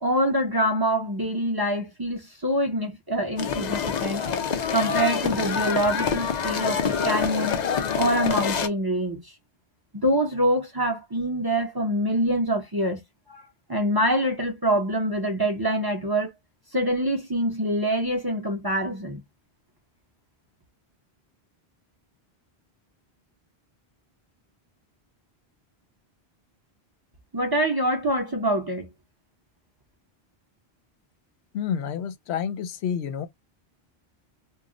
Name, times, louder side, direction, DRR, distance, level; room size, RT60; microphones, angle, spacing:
voice 1, 0.0-4.3 4.7-7.6 7.9-9.2 9.9-13.0 13.3-13.4 13.7-16.3 16.7-19.2 27.3-28.9, equal, 30° right, 0.5 m, -25 dB
sound 1, 3.4-8.7, left 7 dB, 50° left, 0.6 m, -26 dB
voice 2, 31.5-33.3, left 8 dB, 90° left, 0.8 m, -29 dB
2.3 x 2.0 x 3.6 m
omnidirectional pair, 1.1 m